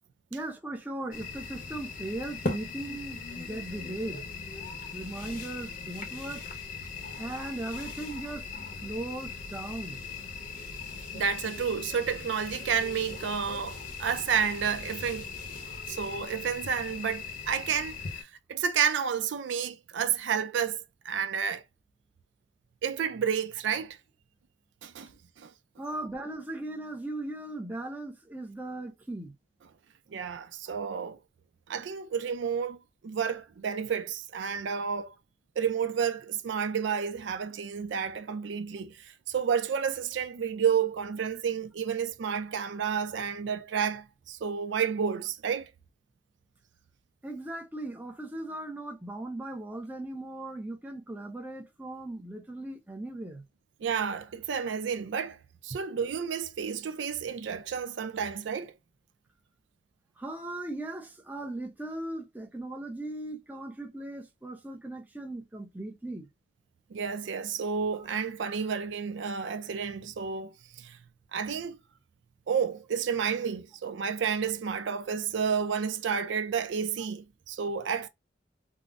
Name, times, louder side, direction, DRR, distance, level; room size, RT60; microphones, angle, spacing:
voice 1, 0.3-4.2 4.9-6.4 7.2-8.5 8.8-10.0 25.8-29.3 47.2-53.4 55.7-55.8 60.2-66.3, right 1 dB, 10° right, 0.6 m, -38 dB
sound 1, 1.1-18.2, left 4 dB, 45° left, 0.8 m, -39 dB
voice 2, 11.1-15.3 15.9-20.8 21.0-21.6 22.8-24.0 24.8-25.1 25.4-25.5 30.1-31.2 31.7-32.8 33.0-35.1 35.6-45.7 53.8-55.4 55.6-58.7 66.9-71.0 71.3-71.8 72.5-78.1, right 7 dB, 75° right, 0.4 m, -31 dB
3.6 x 2.0 x 2.4 m
head